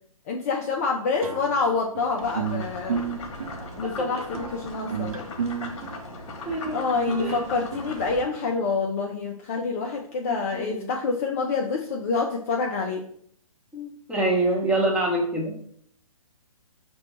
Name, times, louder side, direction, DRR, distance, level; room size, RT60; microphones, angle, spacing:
voice 1, 0.3-3.0 3.8-5.2 6.7-13.0, left 4 dB, 25° left, 0 dB, 0.3 m, -27 dB
sound 1, 1.2-8.6, right 7 dB, 70° right, 0.6 m, -33 dB
sound 2, 2.2-8.3, left 3 dB, 50° left, 0.9 m, -39 dB
voice 2, 6.4-6.8 7.2-7.4 10.3-10.9 13.7-15.6, right 1 dB, 5° right, -2 dB, 0.7 m, -26 dB
5.6 x 2.2 x 3.0 m, 0.65 s
figure-of-eight pair, 130°, 18 cm